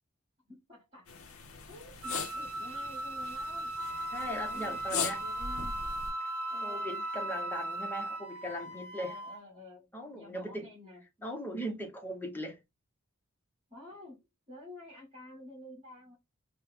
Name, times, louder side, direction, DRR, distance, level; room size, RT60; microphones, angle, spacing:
voice 1, 0.5-1.1 1.7-3.7 4.3-5.9 6.5-7.1 9.0-11.0 13.7-16.2, left 1 dB, 30° right, 1.8 m, -50 dB
sound 1, 1.1-6.1, left 6 dB, 75° left, 0.7 m, -40 dB
Wind instrument woodwind instrument, 2.0-8.3, right 2 dB, 90° right, 0.7 m, -37 dB
Wind instrument woodwind instrument 2, 3.8-9.4, left 1 dB, 10° right, 2.6 m, -45 dB
voice 2, 4.1-5.2 6.2-6.3 6.6-9.2 9.9-10.7 11.2-12.6, equal, 10° left, 0.8 m, -39 dB
4.2 x 2.2 x 3.4 m
head